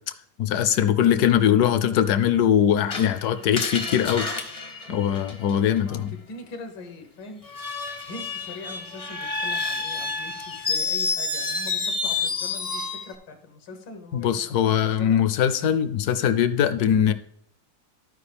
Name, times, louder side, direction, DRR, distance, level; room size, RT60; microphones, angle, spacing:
voice 1, 0.4-4.3 4.9-6.1 14.1-17.1, left 9 dB, 70° left, 1.0 m, -21 dB
Screech, 2.9-5.8 7.4-13.1, left 4 dB, 40° left, 0.5 m, -29 dB
voice 2, 5.7-15.2, left 3 dB, 90° left, 1.8 m, -42 dB
14.0 x 4.8 x 3.4 m
omnidirectional pair, 2.0 m